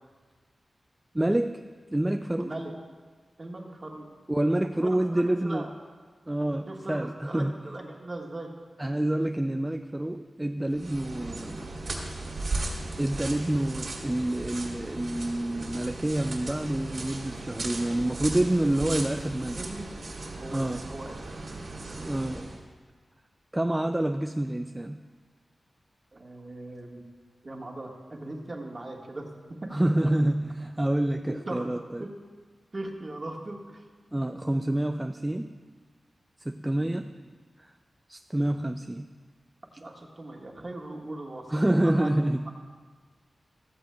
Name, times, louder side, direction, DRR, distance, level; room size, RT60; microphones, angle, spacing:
voice 1, 1.1-1.6 1.9-2.5 4.3-5.7 6.3-7.6 8.8-11.7 13.0-19.6 20.5-20.8 22.1-22.5 23.5-25.0 29.7-32.1 34.1-35.5 36.4-37.1 37.6-37.7 38.1-39.1 41.5-42.5, right 1 dB, 15° right, 6 dB, 0.3 m, -27 dB
voice 2, 2.4-2.7 3.4-4.1 4.8-5.7 6.7-8.5 19.5-19.9 20.3-22.3 26.1-27.0 27.4-29.3 29.6-29.7 30.0-30.1 31.5-31.7 32.0-32.1 32.7-33.8 36.7-37.0 39.8-42.1 42.4-42.5, right 2 dB, 35° right, 0 dB, 1.5 m, -39 dB
sound 1, 10.7-22.6, right 2 dB, 70° right, 1.9 m, -37 dB
15.0 x 13.5 x 2.3 m, 1.5 s
wide cardioid pair, 105°, 0 cm